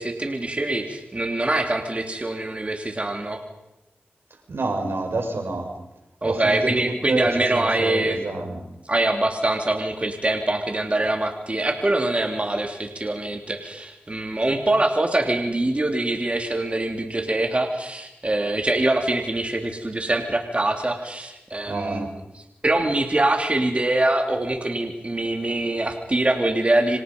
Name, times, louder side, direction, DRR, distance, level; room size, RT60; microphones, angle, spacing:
voice 1, 0.0-3.4 6.2-8.2 8.9-22.1 22.6-27.0, right 2 dB, 30° right, 3 dB, 3.3 m, -24 dB
voice 2, 4.5-5.7 6.2-8.7 21.6-22.1, right 2 dB, 75° right, 3 dB, 6.0 m, -28 dB
30.0 x 26.5 x 5.5 m, 0.92 s
cardioid pair, 55°, 4 cm